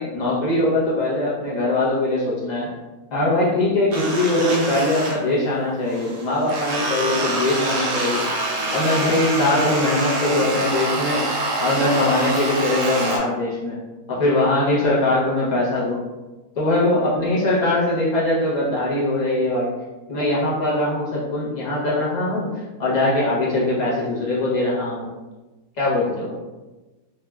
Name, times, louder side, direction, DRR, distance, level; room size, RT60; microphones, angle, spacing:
voice 1, 0.0-2.7 3.1-8.2 8.7-11.3 11.6-13.8 14.1-16.0 16.5-19.7 20.1-25.1 25.8-26.3, left 2 dB, 55° left, -6 dB, 0.4 m, -21 dB
sound 1, 3.9-5.5 5.8-13.2, right 2 dB, 65° right, 0.9 m, -25 dB
2.9 x 2.1 x 2.2 m, 1.2 s
omnidirectional pair, 1.6 m